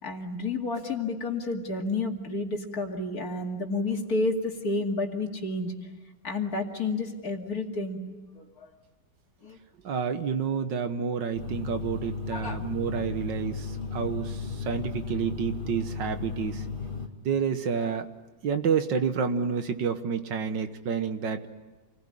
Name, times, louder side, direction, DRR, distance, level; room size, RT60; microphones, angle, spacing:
voice 1, 0.0-5.7 6.2-8.0 8.4-8.7 9.4-9.6 12.3-12.6, left 2 dB, 50° left, 2 dB, 2.9 m, -30 dB
voice 2, 9.8-16.6 17.3-18.1 18.4-21.5, right 6 dB, 70° right, 9 dB, 1.8 m, -29 dB
sound 1, 11.3-17.1, left 5 dB, 25° left, 2.4 m, -35 dB
28.5 x 20.5 x 9.9 m, 1.2 s
omnidirectional pair, 2.1 m